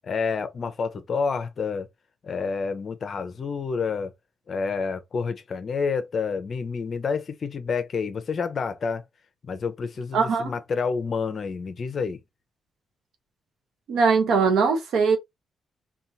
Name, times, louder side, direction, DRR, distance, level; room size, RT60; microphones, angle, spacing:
voice 1, 0.0-1.9 2.2-4.1 4.5-9.0 9.4-12.2, left 5 dB, 45° left, 0.9 m, -29 dB
voice 2, 10.1-10.5 13.9-15.2, right 5 dB, 85° right, 1.4 m, -21 dB
3.6 x 2.5 x 4.1 m
cardioid pair, 115°, 0 cm